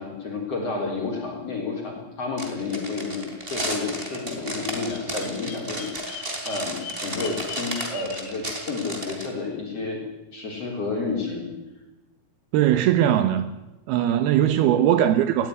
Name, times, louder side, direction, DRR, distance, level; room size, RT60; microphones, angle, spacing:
voice 1, 0.0-5.9 6.4-10.0 10.3-11.5, left 4 dB, 35° left, 4.8 m, -30 dB
sound 1, 2.4-9.3, right 1 dB, 15° right, 3.3 m, -33 dB
Bird vocalization bird call bird song, 4.7-8.4, left 8 dB, 75° left, 4.6 m, -41 dB
voice 2, 12.5-13.5 13.9-15.5, right 11 dB, 75° right, 2.7 m, -20 dB
20.0 x 16.5 x 9.6 m
omnidirectional pair, 4.7 m